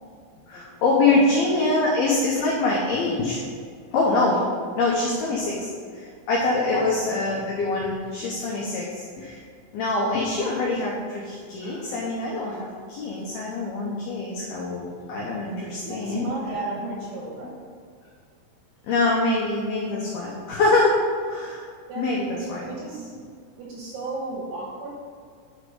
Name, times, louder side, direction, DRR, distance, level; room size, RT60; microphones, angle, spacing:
voice 1, 0.5-3.5 3.9-4.4 4.8-5.7 5.9-9.4 9.7-16.3 18.8-21.7 22.0-22.7, left 2 dB, 85° left, -3 dB, 2.1 m, -24 dB
voice 2, 1.0-1.4 6.7-6.9 15.7-17.6 21.9-22.2 22.6-23.3 23.5-24.9, right 2 dB, 75° right, -3 dB, 2.7 m, -33 dB
9.7 x 4.9 x 5.2 m, 2.1 s
omnidirectional pair, 5.9 m